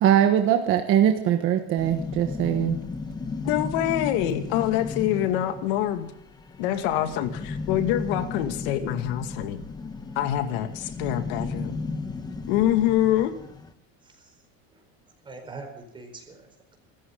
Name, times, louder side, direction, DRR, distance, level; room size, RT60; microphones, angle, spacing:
voice 1, 0.0-2.8, right 10 dB, 40° right, 6 dB, 1.3 m, -21 dB
sound 1, 1.8-13.7, left 4 dB, 10° left, 1.2 m, -35 dB
voice 2, 3.4-6.1 6.6-9.6 10.2-11.8 12.5-13.3, left 12 dB, 70° left, 8 dB, 2.4 m, -25 dB
voice 3, 14.0-14.4 14.7-14.8 15.2-16.8, right 3 dB, 15° right, 4 dB, 4.6 m, -43 dB
25.5 x 14.5 x 3.9 m, 0.75 s
cardioid pair, 160°, 32 cm